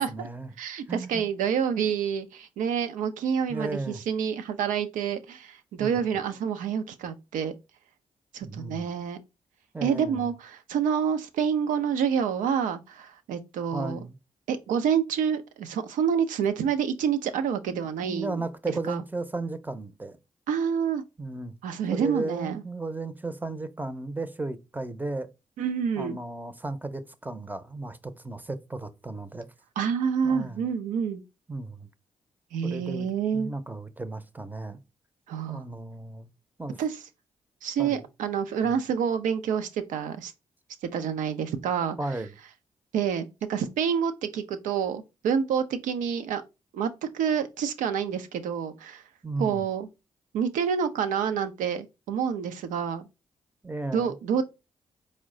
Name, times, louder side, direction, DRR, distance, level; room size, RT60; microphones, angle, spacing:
voice 1, 0.0-0.5 0.9-1.2 3.5-4.0 5.8-6.0 8.4-8.9 9.7-10.3 13.7-14.2 17.6-20.2 21.2-21.5 21.9-25.3 26.0-29.5 30.2-30.7 31.5-31.9 32.6-33.1 33.3-34.8 35.5-36.3 36.6-36.8 37.8-38.0 38.6-38.7 42.0-42.4 49.2-49.6 53.6-54.1, right 2 dB, 15° right, 0.6 m, -35 dB
voice 2, 0.6-7.5 8.3-9.2 9.8-14.0 14.5-18.4 18.9-19.0 20.5-21.0 21.6-22.6 25.6-26.2 29.8-31.2 32.5-33.5 35.3-35.6 36.8-37.0 37.6-40.3 40.9-42.0 42.9-46.4 46.7-49.0 49.4-49.9 50.3-53.1 53.9-54.4, right 7 dB, 85° right, 0.5 m, -28 dB
4.4 x 2.1 x 3.7 m
supercardioid pair, 45°, 13 cm